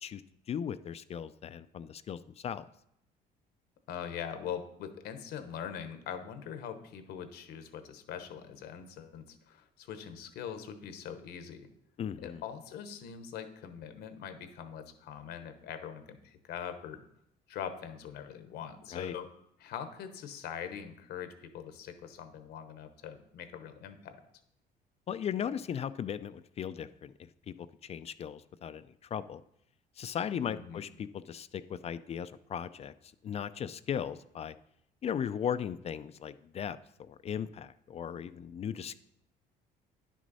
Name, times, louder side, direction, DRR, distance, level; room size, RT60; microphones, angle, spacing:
voice 1, 0.5-2.6 12.0-12.4 18.9-19.1 25.1-29.4 30.0-32.9 33.2-34.5 35.0-39.0, left 8 dB, 40° left, 13 dB, 0.4 m, -37 dB
voice 2, 3.9-11.7 12.2-17.0 17.5-19.3 19.6-24.2 30.5-30.8, left 8 dB, 75° left, 9 dB, 1.0 m, -42 dB
10.0 x 6.2 x 4.1 m, 0.74 s
cardioid pair, 110°, 17 cm